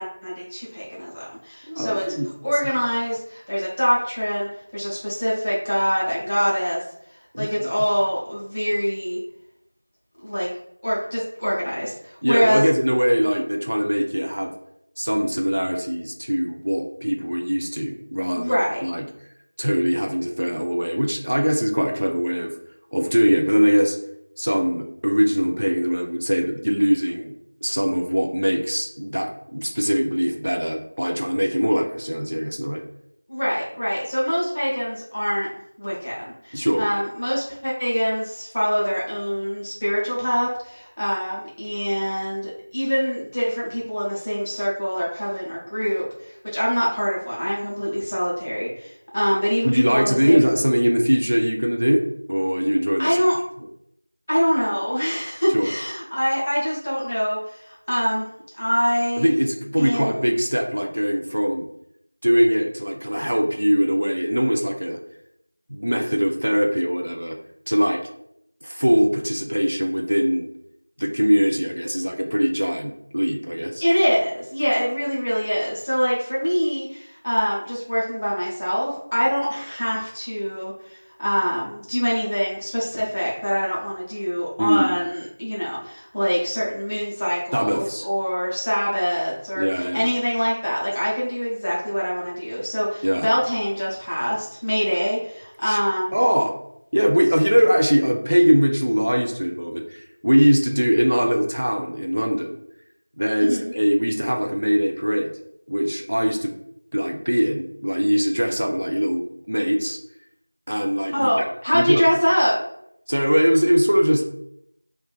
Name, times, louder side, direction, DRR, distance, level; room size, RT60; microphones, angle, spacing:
voice 1, 0.0-2.1 2.4-6.8 7.3-9.2 10.2-10.5 10.8-12.6 18.3-18.8 33.3-35.5 35.8-50.5 53.0-53.4 54.3-58.3 58.5-59.3 59.8-60.2 73.8-96.2 103.4-103.7 111.1-112.6, equal, 15° left, -7 dB, 0.5 m, -24 dB
voice 2, 1.7-2.3 7.3-7.5 12.2-14.5 15.0-18.5 18.8-19.1 19.6-22.5 22.9-24.0 24.4-27.3 27.6-32.8 36.5-36.8 49.6-52.0 52.3-53.2 55.5-55.7 59.2-61.7 62.2-65.0 65.7-67.4 67.7-68.1 68.6-70.5 71.0-73.8 84.6-84.9 87.5-88.1 89.6-90.1 93.0-93.3 95.6-95.8 96.1-96.5 96.9-102.6 103.2-105.3 105.7-106.5 106.9-110.0 110.7-111.4 111.7-112.0 113.1-114.2, equal, 40° right, 2 dB, 0.4 m, -21 dB
2.5 x 2.2 x 3.6 m, 0.74 s
figure-of-eight pair, 180°, 0 cm